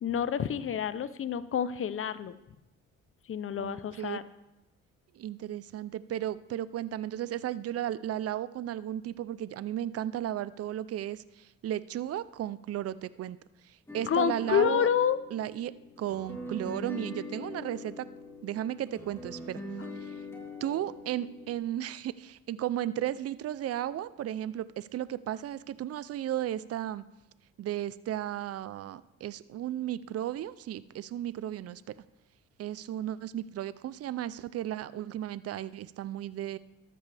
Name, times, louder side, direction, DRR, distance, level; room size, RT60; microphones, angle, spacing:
voice 1, 0.0-2.3 3.3-4.2 14.1-15.2, left 8 dB, 45° left, 15 dB, 0.7 m, -28 dB
voice 2, 3.6-4.2 5.1-13.4 13.6-14.9 15.3-18.1 18.4-19.6 20.0-20.2 20.6-27.0 27.6-31.9 32.6-36.6, right 12 dB, 55° right, 17 dB, 0.5 m, -35 dB
sound 1, 13.9-21.5, left 1 dB, 10° left, 3.3 m, -42 dB
14.0 x 12.5 x 3.4 m, 0.94 s
cardioid pair, 90°, 30 cm